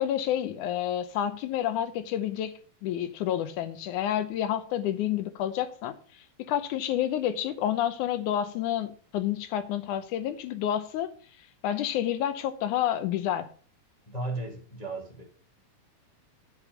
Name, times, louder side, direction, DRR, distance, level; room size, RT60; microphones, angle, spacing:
voice 1, 0.0-2.5 2.8-5.9 6.5-11.1 11.6-13.5, left 11 dB, 70° left, 2.1 m, -29 dB
voice 2, 14.1-15.2, right 2 dB, 25° left, 0.8 m, -35 dB
9.9 x 5.3 x 6.4 m
omnidirectional pair, 4.0 m